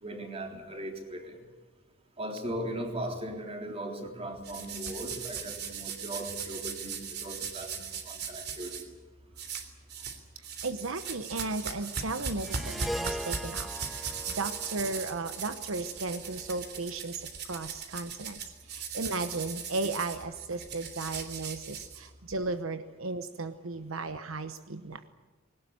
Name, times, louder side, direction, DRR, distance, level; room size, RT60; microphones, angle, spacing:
voice 1, 0.0-1.4 2.2-8.9, right 1 dB, 30° right, 3 dB, 3.7 m, -38 dB
sound 1, 4.4-8.8 9.4-10.2 10.4-22.3, right 6 dB, 55° right, 3.3 m, -38 dB
voice 2, 10.4-25.1, right 3 dB, 75° right, 10 dB, 1.1 m, -35 dB
Harp, 12.4-16.9, equal, ahead, 0.7 m, -41 dB
21.0 x 18.5 x 9.8 m, 1.3 s
head